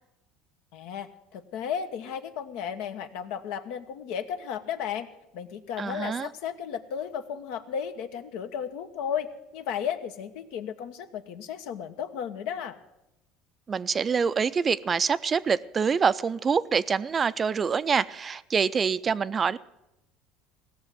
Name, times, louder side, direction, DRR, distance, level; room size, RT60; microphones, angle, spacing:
voice 1, 0.7-5.1 5.3-12.8, left 8 dB, 75° left, 8 dB, 1.1 m, -34 dB
voice 2, 5.8-6.3 13.7-19.6, right 6 dB, 30° right, 16 dB, 0.4 m, -25 dB
16.5 x 7.0 x 9.0 m, 0.91 s
supercardioid pair, 105°, 0 cm